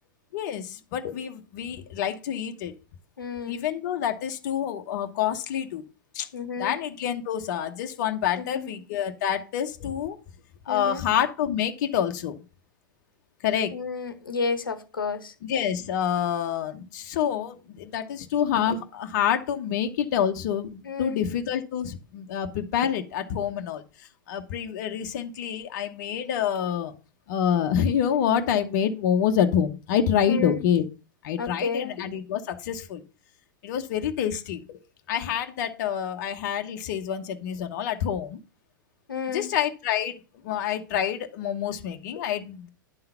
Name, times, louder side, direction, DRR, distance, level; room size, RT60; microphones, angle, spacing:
voice 1, 0.3-2.7 3.5-5.8 6.1-6.3 6.6-10.2 10.7-12.4 13.4-13.7 15.5-26.9 27.3-30.8 31.2-33.0 33.6-34.8 35.1-38.4 39.3-40.1 40.4-42.7, left 9 dB, 55° left, 1.0 m, -27 dB
voice 2, 3.2-3.7 6.3-6.8 8.4-8.7 10.7-11.1 13.7-15.3 20.8-21.2 30.3-30.6 31.4-31.9 39.1-39.5, left 5 dB, 85° left, 1.1 m, -31 dB
10.5 x 3.9 x 5.7 m
hypercardioid pair, 105°, 11 cm